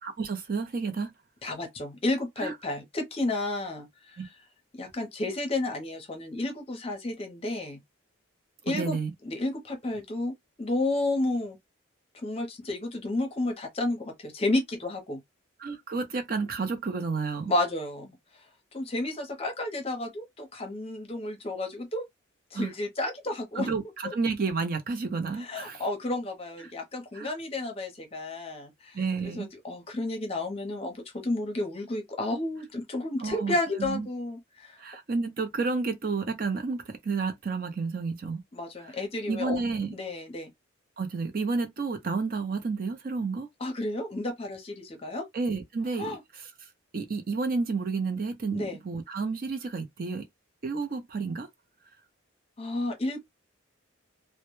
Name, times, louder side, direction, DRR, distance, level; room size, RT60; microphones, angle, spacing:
voice 1, 0.0-1.1 2.4-2.5 4.2-4.3 8.7-9.1 15.6-17.5 22.5-22.7 23.6-25.8 27.1-27.3 28.9-29.5 33.2-34.1 34.8-38.4 38.8-38.9 39.3-40.0 41.0-43.5 45.3-46.2 46.9-50.2 50.6-51.5, right 4 dB, 45° right, 0.5 m, -31 dB
voice 2, 1.4-4.2 4.7-7.8 8.6-9.0 9.2-11.6 12.2-15.2 17.5-18.5 18.7-22.0 22.5-23.7 24.0-24.1 25.4-34.8 38.5-39.6 39.9-40.5 43.6-45.3 46.0-46.2 48.5-48.8 52.6-53.2, left 2 dB, 30° left, 0.6 m, -31 dB
2.1 x 2.1 x 2.9 m
head